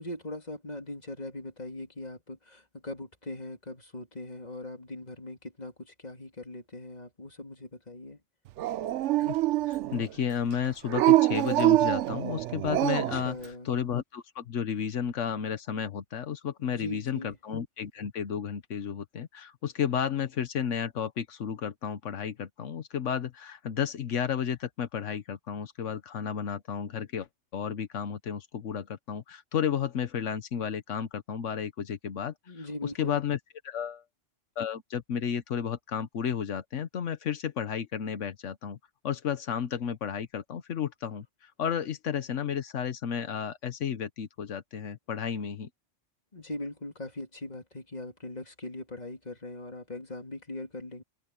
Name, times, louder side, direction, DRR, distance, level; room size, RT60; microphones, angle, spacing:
voice 1, 0.0-8.2 13.1-13.7 16.6-17.4 32.5-33.2 46.3-51.0, left 2 dB, 35° left, 3.0 m, -40 dB
Dog, 8.6-10.1 10.9-13.3, right 16 dB, 75° right, 0.9 m, -25 dB
voice 2, 9.7-27.3 27.5-33.4 33.6-34.0 34.6-38.8 39.0-45.7, left 8 dB, 85° left, 1.3 m, -32 dB
open air
omnidirectional pair, 1.2 m